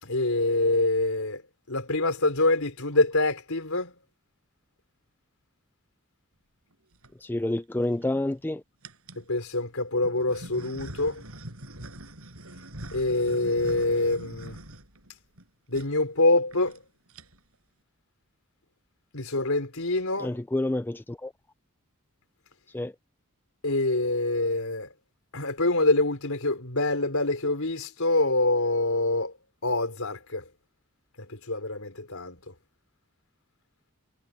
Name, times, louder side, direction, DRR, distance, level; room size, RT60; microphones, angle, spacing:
voice 1, 0.0-1.4 1.7-3.9 9.2-11.2 12.9-14.6 15.7-16.8 19.1-20.4 23.6-24.9 25.3-29.3 29.6-30.5 31.2-32.5, left 2 dB, 70° left, 4.8 m, -25 dB
sound 1, 6.7-7.1 7.8-8.4 8.8-9.3 10.0-15.4 15.7-15.9 16.2-16.3 16.5-16.8 17.1-17.6, right 1 dB, 75° right, 7.6 m, -44 dB
voice 2, 7.2-8.6 20.2-21.3 22.7-22.9, left 1 dB, 10° left, 0.4 m, -28 dB
head